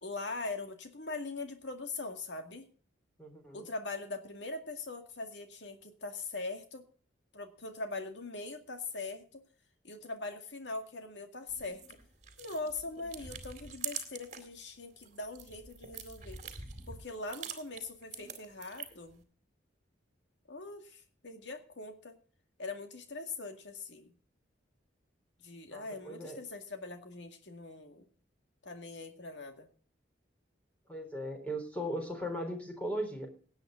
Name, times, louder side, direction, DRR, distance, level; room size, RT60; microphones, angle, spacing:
voice 1, 0.0-2.7 3.5-6.8 7.3-9.4 9.8-12.0 12.4-16.4 16.9-19.2 20.5-22.2 22.6-24.2 25.4-28.0 28.6-29.7, left 3 dB, 75° left, 5 dB, 2.1 m, -41 dB
voice 2, 3.2-3.7 25.7-26.4 30.9-33.3, equal, 10° left, 3 dB, 3.7 m, -38 dB
sound 1, 11.5-14.5 14.9-19.1, right 7 dB, 40° right, 2.2 m, -45 dB
18.0 x 8.8 x 3.8 m, 0.43 s
head